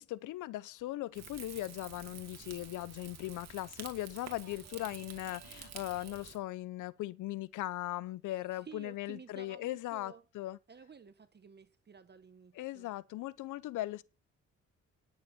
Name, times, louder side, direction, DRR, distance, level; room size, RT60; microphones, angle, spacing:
voice 1, 0.0-10.6 12.5-14.0, left 16 dB, 80° left, 0.7 m, -39 dB
Rain / Fire, 1.1-6.4, right 8 dB, 60° right, 2.4 m, -49 dB
voice 2, 8.5-10.2 10.7-12.9, right 6 dB, 35° right, 1.2 m, -53 dB
10.0 x 7.2 x 7.0 m
cardioid pair, 90°, 30 cm